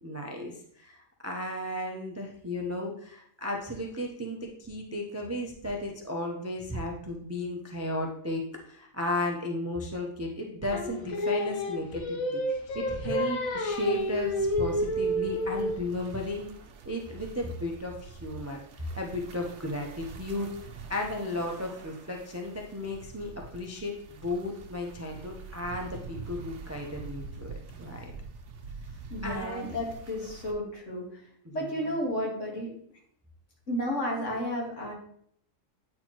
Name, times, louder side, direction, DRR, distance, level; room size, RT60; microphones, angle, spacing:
voice 1, 0.0-16.5 16.8-20.5 20.9-28.1 29.2-29.8 31.4-31.5, left 1 dB, 20° right, 0 dB, 0.4 m, -34 dB
Singing, 10.7-15.9, left 1 dB, 90° left, 1.3 m, -30 dB
sound 1, 13.7-30.5, right 4 dB, 65° right, 1.0 m, -46 dB
voice 2, 29.1-31.2 31.5-32.7 33.7-34.9, equal, 65° left, -2 dB, 2.0 m, -32 dB
8.5 x 4.4 x 2.9 m, 0.65 s
omnidirectional pair, 1.4 m